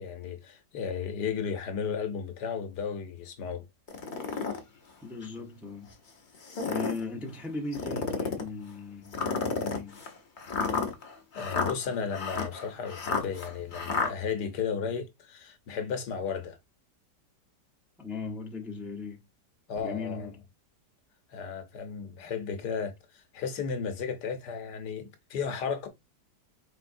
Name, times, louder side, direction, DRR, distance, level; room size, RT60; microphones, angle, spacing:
voice 1, 0.0-3.7 10.7-10.8 11.3-16.6 19.7-20.3 21.3-25.9, left 6 dB, 75° left, 1.4 m, -34 dB
sound 1, 3.9-4.6 5.2-5.3 6.3-7.0 7.7-8.5 9.1-14.1, left 5 dB, 40° left, 0.8 m, -31 dB
voice 2, 5.0-5.9 6.6-10.0 18.0-19.2 19.8-20.4, left 3 dB, ahead, 0.6 m, -38 dB
4.7 x 3.6 x 2.6 m
omnidirectional pair, 1.8 m